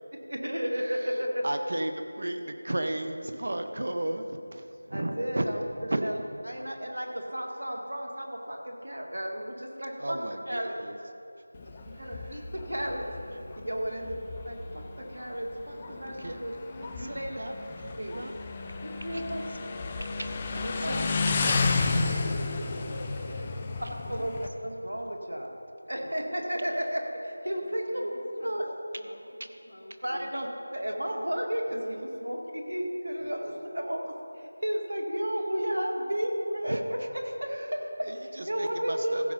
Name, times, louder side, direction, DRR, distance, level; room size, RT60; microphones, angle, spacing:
voice 1, 0.3-1.4 4.9-6.2 6.4-10.2 10.5-10.8 11.8-13.0 13.7-14.1 14.5-16.5 17.0-17.4 17.9-18.2 18.8-19.6 20.8-21.2 22.1-22.8 24.1-24.3 24.6-25.5 25.9-28.2 28.4-28.6 30.0-37.8 38.4-39.3, equal, 80° right, 1 dB, 2.0 m, -33 dB
voice 2, 1.4-4.3 4.5-5.4 5.9-6.0 10.0-10.9 16.2-16.4 17.1-17.5 17.8-18.3 20.2-21.0 36.7-36.8 38.6-39.3, right 1 dB, 60° right, 7 dB, 1.0 m, -33 dB
Motorcycle, 11.5-24.5, left 3 dB, 20° left, 0.5 m, -32 dB
voice 3, 11.6-12.4 13.8-14.1 22.2-22.4 22.7-24.1 26.4-26.5 27.3-28.7 29.0-30.4 31.0-31.2 32.3-32.4 37.2-38.7, left 1 dB, 60° left, 1 dB, 1.8 m, -48 dB
15.0 x 6.7 x 5.4 m, 2.7 s
figure-of-eight pair, 170°, 0 cm